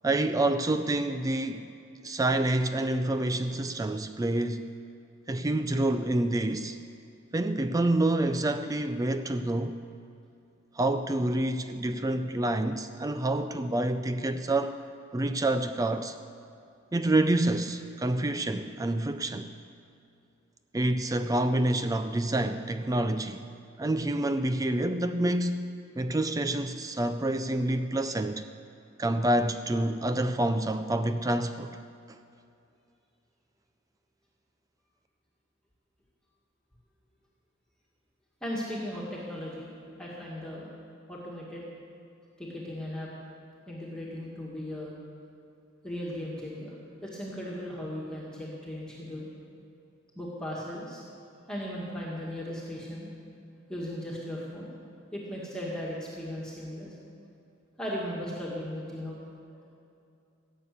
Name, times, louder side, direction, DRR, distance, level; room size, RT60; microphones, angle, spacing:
voice 1, 0.0-1.7 2.0-4.7 5.3-6.8 7.3-9.8 10.8-14.8 15.1-16.2 16.9-19.5 20.7-23.4 23.8-25.7 26.0-28.4 29.0-31.7, right 1 dB, 15° right, 9 dB, 0.4 m, -27 dB
voice 2, 38.4-39.7 40.0-40.7 41.1-41.6 42.4-43.1 43.7-45.0 45.8-46.7 47.0-49.3 50.1-51.0 51.5-53.1 53.7-54.7 55.1-56.9 57.8-59.2, equal, 5° left, -5 dB, 1.9 m, -37 dB
16.0 x 7.3 x 8.3 m, 2.6 s
head